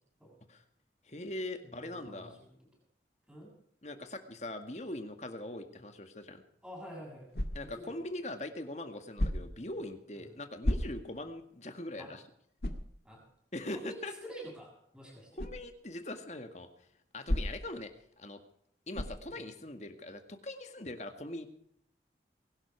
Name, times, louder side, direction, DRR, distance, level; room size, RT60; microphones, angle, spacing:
voice 1, 1.1-2.4 3.8-6.4 7.5-12.2 13.5-14.1 15.4-16.7 17.1-18.4 18.9-21.5, left 1 dB, 40° left, 7 dB, 2.0 m, -41 dB
voice 2, 1.6-2.5 3.3-3.5 6.6-7.3 7.7-7.9 10.1-10.2 12.0-12.1 13.0-13.2 13.7-15.3 19.3-19.5, equal, 5° right, -3 dB, 7.1 m, -48 dB
sound 1, 7.3-7.9 9.1-9.7 10.6-11.2 11.7-11.8 12.6-12.9 15.4-15.6 17.3-17.8 18.9-19.3, left 1 dB, 65° left, 2.1 m, -33 dB
22.5 x 12.0 x 4.7 m, 0.71 s
head